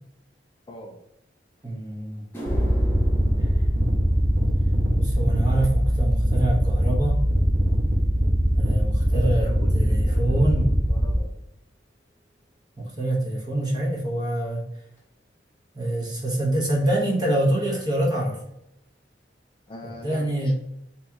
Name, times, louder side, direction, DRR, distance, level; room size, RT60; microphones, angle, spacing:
voice 1, 0.7-1.0 9.1-11.3 19.7-20.5, left 1 dB, 30° left, 0 dB, 0.5 m, -42 dB
sound 1, 1.6-1.7 2.1-10.6 10.9-11.4 12.1-12.2 15.0-15.1 16.7-16.8 17.0-17.2 17.5-18.0 18.5-18.6 19.1-19.2, right 1 dB, 10° left, 1.0 m, -43 dB
voice 2, 1.6-2.2 5.0-7.2 8.5-10.8 12.8-14.7 15.7-18.4 19.8-20.5, right 1 dB, 25° right, -3 dB, 1.0 m, -25 dB
sound 2, 2.5-11.2, equal, 75° right, 0.7 m, -21 dB
3.0 x 2.9 x 3.5 m, 0.79 s
head